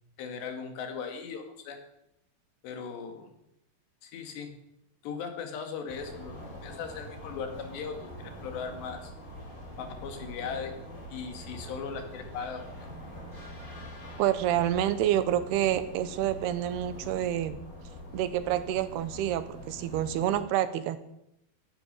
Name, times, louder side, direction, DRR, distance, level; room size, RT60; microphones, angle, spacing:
voice 1, 0.2-1.8 2.6-3.3 4.0-4.5 5.0-9.1 9.8-10.7 11.1-12.6, left 6 dB, 85° left, 6 dB, 4.2 m, -38 dB
sound 1, 5.9-20.4, equal, 20° left, 4.2 m, -44 dB
voice 2, 14.2-17.6 18.1-21.0, right 11 dB, 80° right, 13 dB, 2.8 m, -28 dB
16.5 x 12.0 x 6.7 m, 0.83 s
omnidirectional pair, 4.8 m